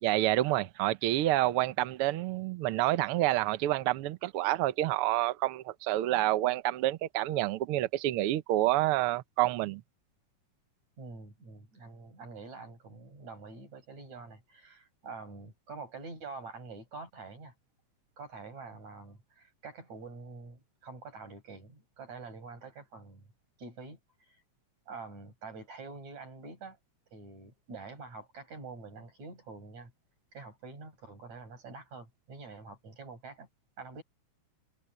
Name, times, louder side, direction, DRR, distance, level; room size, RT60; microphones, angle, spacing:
voice 1, 0.0-9.8, right 15 dB, 90° right, 1.2 m, -28 dB
voice 2, 11.0-17.5 18.2-23.3 23.6-24.0 24.3-24.4 24.9-26.8 27.1-29.9 30.3-33.5 33.8-34.0, right 4 dB, 60° right, 8.4 m, -46 dB
omnidirectional pair, 3.6 m